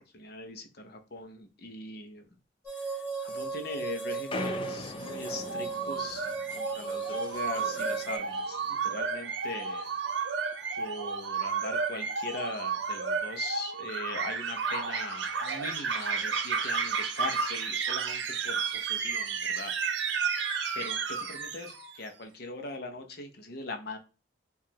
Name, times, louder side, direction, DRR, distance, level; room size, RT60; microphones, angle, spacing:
voice 1, 0.1-2.2 3.2-6.3 6.5-9.9 10.8-19.7 20.7-24.0, left 3 dB, 55° left, 5 dB, 0.7 m, -40 dB
sound 1, 2.6-8.2, right 5 dB, 10° right, 1.1 m, -36 dB
sound 2, 4.1-8.9 9.2-10.2 10.5-10.8 11.3-13.2 13.6-13.7 13.9-14.0 14.3-14.7 15.5-15.7 16.5-16.9, left 3 dB, 25° left, 0.3 m, -44 dB
sound 3, 5.5-22.0, right 5 dB, 65° right, 0.6 m, -32 dB
4.8 x 2.4 x 2.8 m, 0.31 s
head